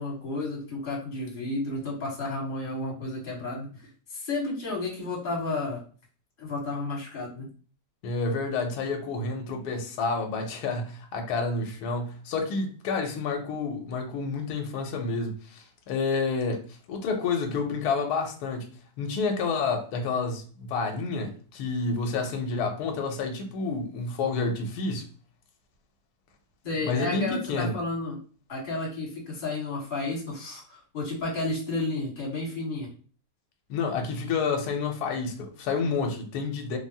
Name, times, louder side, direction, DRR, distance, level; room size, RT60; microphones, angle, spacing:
voice 1, 0.0-5.8 6.4-7.5 26.6-28.2 28.5-32.9, left 2 dB, 35° left, 1.2 m, -32 dB
voice 2, 8.0-18.7 19.0-25.1 26.8-27.7 33.7-36.8, left 4 dB, 70° left, 1.1 m, -29 dB
3.4 x 2.0 x 2.6 m
omnidirectional pair, 1.8 m